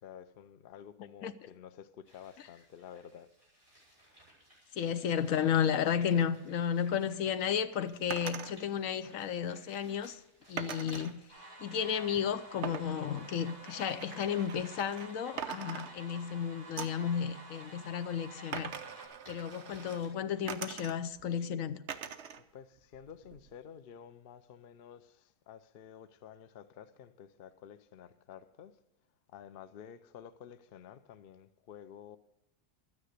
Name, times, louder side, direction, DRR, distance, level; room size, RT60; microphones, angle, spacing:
voice 1, 0.0-3.3 22.4-28.8 29.3-32.2, left 8 dB, 80° left, 0.5 m, -51 dB
sound 1, 2.0-20.1, right 1 dB, 20° right, 5.9 m, -61 dB
voice 2, 4.7-10.2 10.5-18.7 19.3-21.8, left 8 dB, 65° left, 1.0 m, -33 dB
sound 2, 8.1-8.5 10.6-11.1 12.6-15.1 15.4-16.3 16.8-17.1 18.5-20.0 20.5-21.2 21.9-22.4 22.8-23.6, right 7 dB, 55° right, 0.8 m, -42 dB
sound 3, 11.3-19.1, right 2 dB, 75° right, 5.0 m, -51 dB
12.5 x 9.6 x 6.5 m
omnidirectional pair, 1.7 m